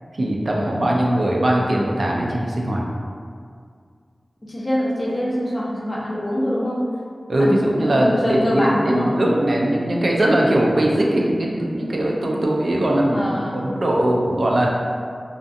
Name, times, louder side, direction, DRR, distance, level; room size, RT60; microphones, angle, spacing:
voice 1, 0.2-2.8 7.3-14.7, right 1 dB, 65° right, -2 dB, 0.4 m, -20 dB
voice 2, 4.5-6.8 7.4-9.1 13.0-13.6, equal, 40° left, -5 dB, 0.6 m, -24 dB
2.5 x 2.3 x 2.5 m, 2.1 s
wide cardioid pair, 70°, 0 cm